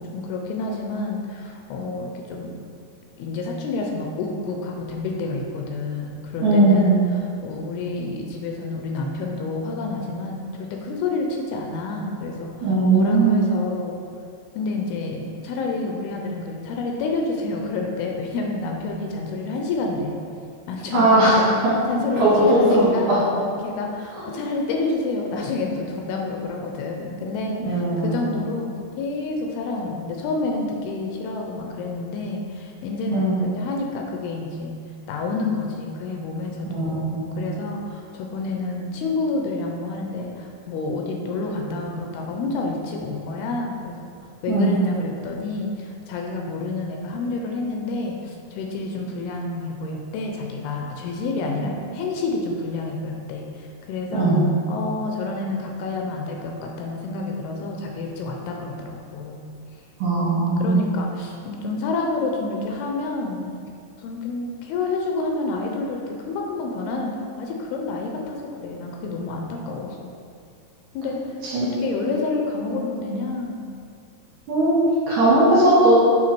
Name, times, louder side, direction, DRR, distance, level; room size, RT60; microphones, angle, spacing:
voice 1, 0.0-2.5 3.2-14.0 14.5-20.2 20.7-21.5 21.9-28.7 29.0-34.7 35.1-44.0 44.4-54.4 54.7-59.4 60.4-63.6 64.0-70.1 70.9-71.2 71.6-73.7, left 3 dB, 80° left, 1 dB, 2.4 m, -29 dB
voice 2, 6.4-7.0 12.6-13.4 20.9-21.4 21.6-21.7 22.2-23.2 24.1-24.3 27.6-28.3 33.1-33.4 36.7-37.4 44.5-44.7 54.1-54.4 60.0-60.8 71.4-71.7 74.5-76.0, right 2 dB, 60° right, -9 dB, 2.5 m, -18 dB
7.6 x 3.4 x 4.4 m, 2.4 s
omnidirectional pair, 4.6 m